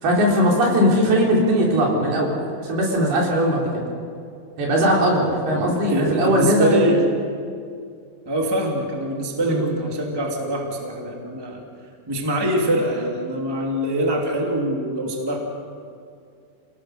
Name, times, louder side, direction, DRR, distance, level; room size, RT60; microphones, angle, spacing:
voice 1, 0.0-2.4 2.6-3.8 4.6-6.9 9.4-9.6, equal, 70° right, -2 dB, 5.9 m, -19 dB
voice 2, 5.9-7.0 8.2-11.6 12.1-15.4, right 1 dB, 10° right, 0 dB, 1.6 m, -24 dB
28.5 x 18.5 x 6.5 m, 2.3 s
omnidirectional pair, 4.7 m